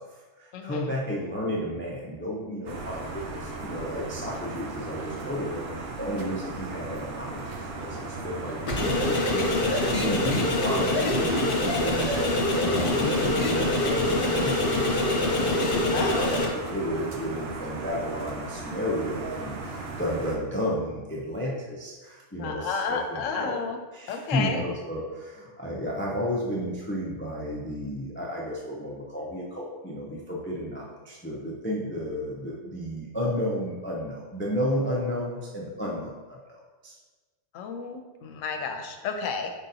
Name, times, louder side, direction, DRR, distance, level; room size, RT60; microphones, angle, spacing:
voice 1, 0.0-16.4 16.7-23.6 23.9-36.6 36.8-36.9, equal, 20° left, -3 dB, 0.3 m, -32 dB
voice 2, 0.5-0.9 15.9-16.4 22.4-23.8 24.1-24.6 37.5-39.5, left 5 dB, 80° left, 6 dB, 0.9 m, -31 dB
sound 1, 2.7-20.4, right 3 dB, 60° right, 0.7 m, -37 dB
sound 2, 8.7-16.5, left 2 dB, 50° left, 0.9 m, -25 dB
5.0 x 3.8 x 2.7 m, 1.3 s
omnidirectional pair, 1.3 m